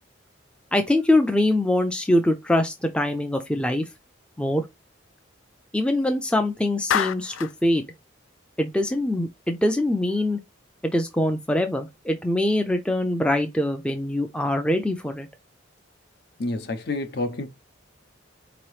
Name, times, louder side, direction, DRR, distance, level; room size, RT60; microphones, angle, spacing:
voice 1, 0.7-3.8 4.4-4.7 5.7-7.8 8.6-10.4 10.8-15.3, left 1 dB, 5° left, 0.4 m, -23 dB
Clapping, 6.9-7.6, left 9 dB, 90° left, 0.4 m, -26 dB
voice 2, 16.4-17.5, left 2 dB, 55° left, 0.7 m, -28 dB
4.6 x 2.9 x 3.1 m
head